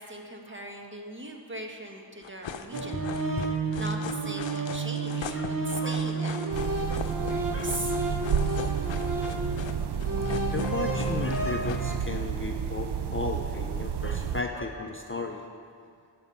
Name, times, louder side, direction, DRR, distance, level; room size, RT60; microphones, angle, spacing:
voice 1, 0.0-3.1 3.8-6.4 6.8-8.0, right 1 dB, 25° right, 2 dB, 1.2 m, -40 dB
sound 1, 2.2-12.2, left 7 dB, 75° left, 0.7 m, -40 dB
sound 2, 2.7-12.0, right 3 dB, 45° right, 1.0 m, -31 dB
sound 3, 6.5-14.4, right 7 dB, 65° right, 0.6 m, -31 dB
voice 2, 10.5-15.4, left 3 dB, 30° left, 3 dB, 0.5 m, -35 dB
14.0 x 6.2 x 5.4 m, 2.3 s
wide cardioid pair, 100°, 45 cm